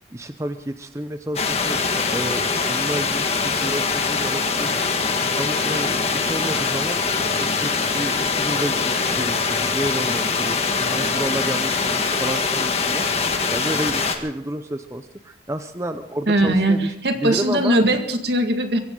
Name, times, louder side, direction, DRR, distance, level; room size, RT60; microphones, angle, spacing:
voice 1, 0.1-7.0 7.4-17.8, right 1 dB, 15° right, 8 dB, 0.7 m, -31 dB
sound 1, 1.4-14.2, left 4 dB, 35° left, 1.7 m, -23 dB
voice 2, 16.3-18.8, right 1 dB, 65° right, 6 dB, 2.0 m, -20 dB
23.5 x 16.0 x 3.9 m, 0.78 s
head